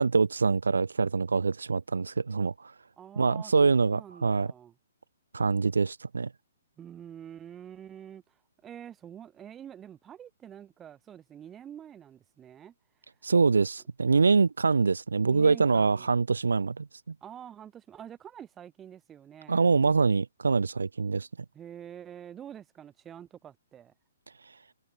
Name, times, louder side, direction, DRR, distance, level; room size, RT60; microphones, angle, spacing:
voice 1, 0.0-2.7 3.2-4.5 5.3-6.3 13.2-16.9 19.5-21.3, right 4 dB, 90° right, 0.7 m, -24 dB
voice 2, 3.0-3.5 3.8-4.7 6.8-8.3 8.6-12.7 15.2-16.1 17.2-19.7 21.5-23.9, right 9 dB, 15° right, 3.8 m, -46 dB
hypercardioid pair, 140°, 0 cm